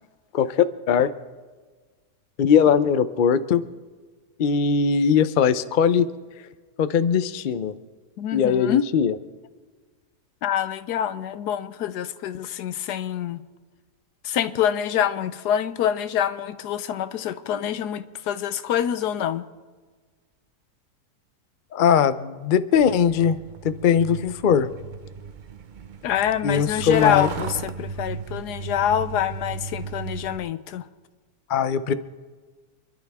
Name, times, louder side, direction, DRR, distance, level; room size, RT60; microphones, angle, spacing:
voice 1, 0.3-1.1 2.4-3.6 4.4-6.0 6.8-7.7 8.3-9.1 21.7-23.4 23.6-24.7 26.4-27.3 31.5-31.9, left 7 dB, 60° left, 0.5 m, -20 dB
voice 2, 8.2-8.9 10.4-13.4 14.2-19.4 26.0-30.9, left 10 dB, 90° left, 1.3 m, -26 dB
Truck, 22.8-30.4, right 5 dB, 60° right, 0.5 m, -35 dB
27.5 x 12.0 x 3.5 m
omnidirectional pair, 1.7 m